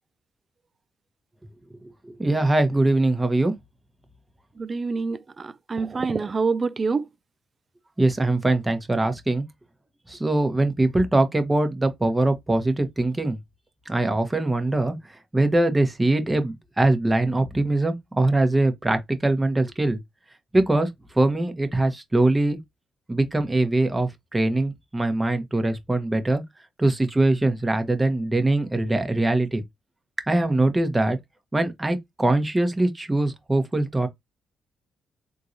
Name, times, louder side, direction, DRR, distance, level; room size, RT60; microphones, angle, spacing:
voice 1, 1.8-3.5 8.0-9.5 10.1-13.4 13.9-15.0 15.3-20.0 20.5-20.9 21.2-22.6 23.1-26.4 26.8-29.6 30.3-31.2 31.5-34.1, right 2 dB, 20° right, 1.0 m, -22 dB
voice 2, 4.6-7.1, right 4 dB, 40° right, 0.4 m, -26 dB
3.8 x 2.8 x 2.6 m
supercardioid pair, 60°, 0 cm